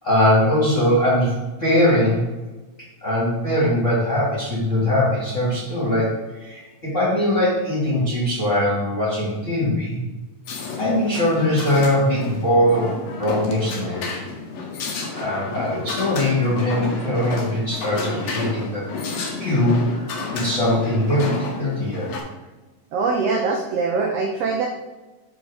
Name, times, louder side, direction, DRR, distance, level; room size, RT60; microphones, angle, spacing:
voice 1, 0.0-2.3 3.0-10.0 10.8-14.0 15.2-18.8 19.4-22.1, left 1 dB, 25° left, -6 dB, 2.0 m, -21 dB
sound 1, 10.4-22.2, left 4 dB, 65° left, 1.7 m, -31 dB
voice 2, 22.9-24.7, right 4 dB, 85° right, 0 dB, 1.4 m, -22 dB
6.3 x 4.7 x 4.8 m, 1.1 s
omnidirectional pair, 3.9 m